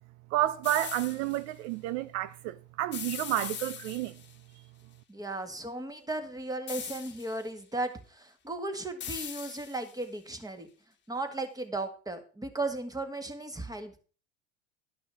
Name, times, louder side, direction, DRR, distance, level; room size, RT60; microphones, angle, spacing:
voice 1, 0.3-4.2, right 14 dB, 65° right, 0.6 m, -30 dB
sound 1, 0.6-1.4 2.9-4.4 6.7-7.5 9.0-10.0, left 8 dB, 30° left, 1.5 m, -41 dB
voice 2, 5.1-10.7 11.1-14.0, right 2 dB, 10° right, 1.9 m, -36 dB
11.5 x 6.1 x 5.6 m
hypercardioid pair, 95°, 35 cm